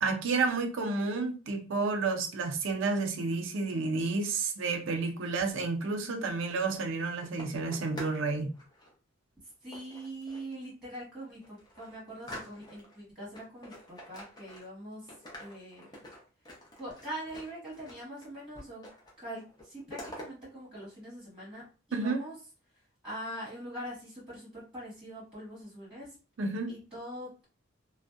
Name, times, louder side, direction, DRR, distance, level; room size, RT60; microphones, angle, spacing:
voice 1, 0.0-8.5 21.9-22.2 26.4-26.8, right 4 dB, 65° right, 0.4 m, -30 dB
voice 2, 5.9-6.4 9.6-15.1 15.4-16.0 16.7-18.9 19.2-22.3 23.0-26.1 26.7-27.4, right 1 dB, 5° right, 1.3 m, -43 dB
sound 1, 6.3-8.2 8.5-8.9 9.7-10.5 11.0-11.1 11.4-13.0 13.3-14.8 15.1-18.3 18.5-19.2 19.4-20.3, left 1 dB, 20° left, 0.6 m, -47 dB
2.6 x 2.0 x 2.3 m
head